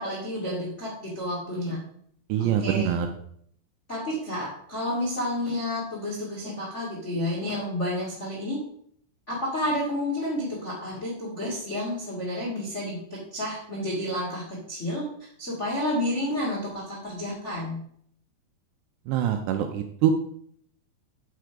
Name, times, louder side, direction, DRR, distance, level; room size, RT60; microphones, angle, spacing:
voice 1, 0.0-1.8 2.4-2.9 3.9-8.6 9.3-17.8, left 1 dB, 70° left, -5 dB, 0.6 m, -30 dB
voice 2, 2.3-3.1 19.1-20.1, right 10 dB, 85° right, 6 dB, 2.5 m, -24 dB
6.8 x 6.4 x 4.9 m, 0.65 s
omnidirectional pair, 5.4 m